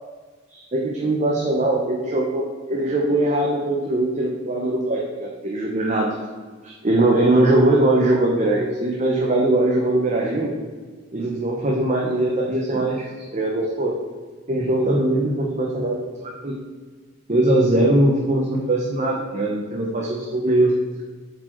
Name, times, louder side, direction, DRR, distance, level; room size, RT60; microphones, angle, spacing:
voice 1, 0.5-6.2 6.6-10.5 11.1-13.9 14.5-16.6 17.3-20.8, right 1 dB, 40° right, -2 dB, 1.0 m, -21 dB
7.9 x 4.9 x 4.6 m, 1.4 s
head